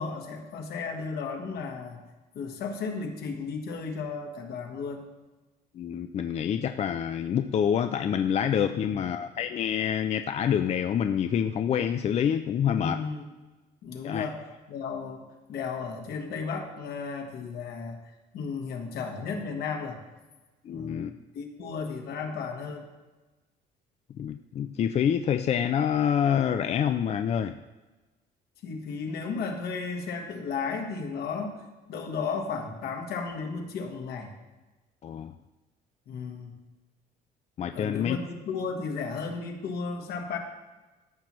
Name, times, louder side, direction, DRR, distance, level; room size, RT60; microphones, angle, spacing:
voice 1, 0.0-2.0 2.3-5.0 8.7-9.0 12.8-13.2 13.8-15.2 15.5-18.0 18.3-20.0 20.7-21.1 21.3-22.8 28.6-31.5 31.9-34.3 36.1-36.6 37.7-40.4, left 5 dB, 70° left, 3 dB, 1.4 m, -34 dB
voice 2, 5.7-13.0 14.0-14.3 20.6-21.1 24.2-27.6 35.0-35.3 37.6-38.2, left 8 dB, 40° left, 8 dB, 0.4 m, -27 dB
13.5 x 5.9 x 3.1 m, 1.2 s
cardioid pair, 110°, 17 cm